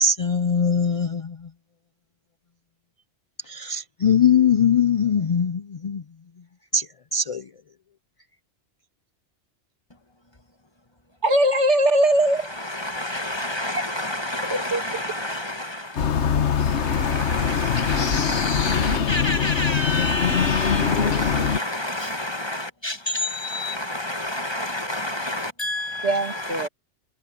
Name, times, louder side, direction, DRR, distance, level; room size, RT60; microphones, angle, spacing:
voice 1, 0.0-1.4 3.5-6.0 6.7-6.8 7.1-7.4, left 6 dB, 55° left, 0.4 m, -21 dB
voice 2, 11.2-12.5 14.5-14.8 26.0-26.7, right 1 dB, 80° right, 2.5 m, -20 dB
voice 3, 12.3-26.7, left 1 dB, 25° left, 1.3 m, -29 dB
sound 1, 16.0-21.6, left 7 dB, 75° left, 1.4 m, -23 dB
omnidirectional pair, 1.2 m